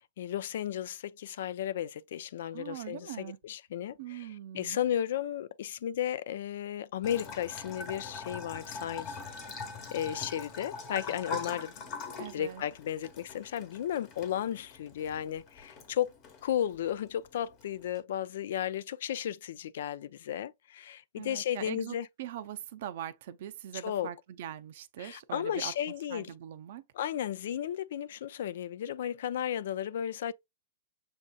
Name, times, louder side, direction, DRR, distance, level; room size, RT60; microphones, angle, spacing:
voice 1, 0.0-4.3 4.5-9.2 9.9-11.7 12.3-16.1 16.4-22.1 23.7-24.1 25.0-26.3 26.9-30.3, left 10 dB, 65° left, 0.3 m, -34 dB
voice 2, 2.5-3.4 4.0-4.8 12.2-12.6 21.2-25.7 26.1-26.8, right 11 dB, 60° right, 0.5 m, -42 dB
Bathtub (filling or washing) / Trickle dribble, 7.0-18.0, left 4 dB, 35° left, 1.1 m, -43 dB
6.2 x 2.7 x 2.3 m
hypercardioid pair, 145°, 0 cm